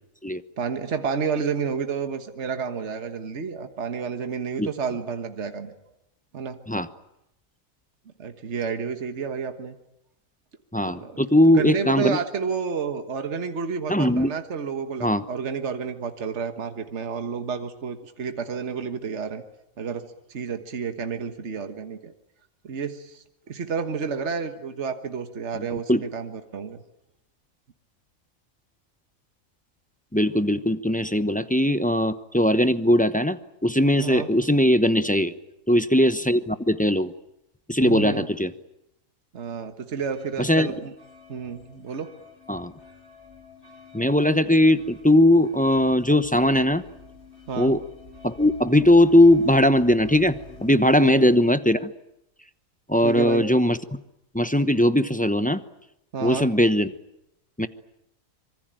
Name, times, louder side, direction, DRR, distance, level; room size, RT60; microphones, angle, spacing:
voice 1, 0.6-5.7 6.3-6.6 8.2-9.8 10.9-11.2 11.5-19.4 19.8-22.1 22.6-26.8 34.0-34.3 37.8-38.3 39.3-40.9 41.3-42.1 47.5-47.7 51.0-51.3 53.0-53.5 56.1-56.5, right 6 dB, 55° right, 7 dB, 1.7 m, -30 dB
voice 2, 10.7-12.2 13.9-14.3 15.0-15.2 25.9-26.0 30.1-35.3 35.7-37.1 37.7-38.5 40.4-40.7 42.5-42.7 43.9-46.8 47.6-47.8 48.2-50.3 50.6-51.9 52.9-53.8 54.3-55.6 56.2-56.9 57.6-57.7, left 1 dB, 5° left, 11 dB, 0.7 m, -19 dB
sound 1, 40.0-51.4, left 2 dB, 50° left, 3.9 m, -48 dB
25.5 x 24.0 x 9.0 m, 0.84 s
omnidirectional pair, 1.4 m